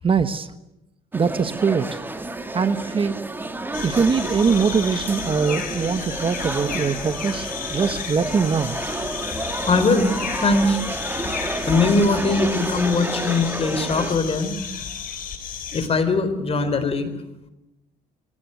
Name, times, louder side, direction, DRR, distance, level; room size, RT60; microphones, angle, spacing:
voice 1, 0.0-0.5 1.1-2.0 2.5-3.2 3.8-8.8, right 5 dB, 30° right, 11 dB, 1.1 m, -22 dB
sound 1, 1.1-14.2, right 2 dB, 10° right, 1.9 m, -30 dB
sound 2, 3.7-15.9, left 7 dB, 55° left, 4.9 m, -33 dB
voice 2, 9.7-10.1 10.4-10.8 11.7-14.6 15.7-17.1, left 3 dB, 35° left, 11 dB, 4.1 m, -20 dB
25.5 x 17.5 x 9.4 m, 0.93 s
cardioid pair, 110°, 17 cm